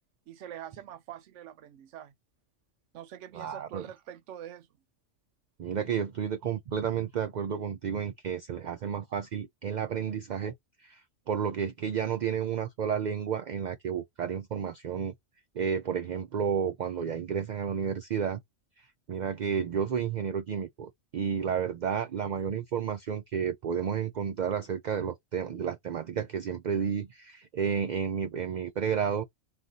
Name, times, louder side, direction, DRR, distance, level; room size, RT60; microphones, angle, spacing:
voice 1, 0.3-2.1 2.9-4.7, right 11 dB, 80° right, 1.0 m, -44 dB
voice 2, 3.3-3.9 5.6-10.5 10.8-15.1 15.6-18.4 18.8-29.2, right 7 dB, 60° right, 0.4 m, -31 dB
3.8 x 2.4 x 4.0 m
omnidirectional pair, 1.2 m